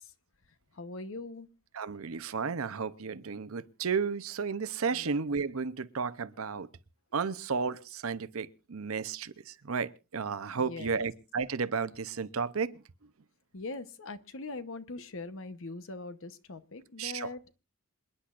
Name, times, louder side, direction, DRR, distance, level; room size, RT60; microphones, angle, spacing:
voice 1, 0.7-1.5 4.9-5.1 10.6-11.1 13.5-17.4, left 3 dB, 60° left, 1.0 m, -41 dB
voice 2, 1.7-6.7 7.1-12.7 17.0-17.3, right 5 dB, 65° right, 0.7 m, -33 dB
27.5 x 10.0 x 2.5 m
head